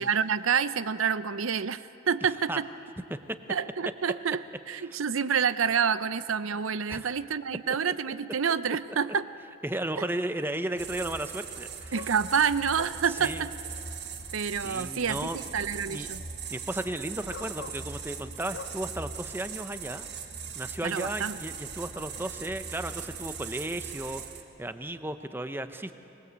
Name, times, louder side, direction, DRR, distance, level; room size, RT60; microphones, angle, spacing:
voice 1, 0.0-1.8 2.1-2.7 3.5-9.3 11.9-13.5 14.3-16.2 20.8-21.4, right 6 dB, 80° right, 14 dB, 0.7 m, -28 dB
sound 1, 9.1-9.2 11.9-12.2 12.7-13.0 14.2-14.3 16.1-16.2 17.3-17.9 18.5-18.8 20.9-21.0, left 4 dB, 60° left, 0.8 m, -43 dB
voice 2, 9.6-12.1 13.1-13.4 14.6-16.1 16.5-20.1 20.6-24.2 24.6-25.9, right 1 dB, 10° right, 9 dB, 0.7 m, -35 dB
sound 2, 10.8-24.4, right 6 dB, 55° right, 1.8 m, -40 dB
25.0 x 20.5 x 8.1 m, 2.8 s
head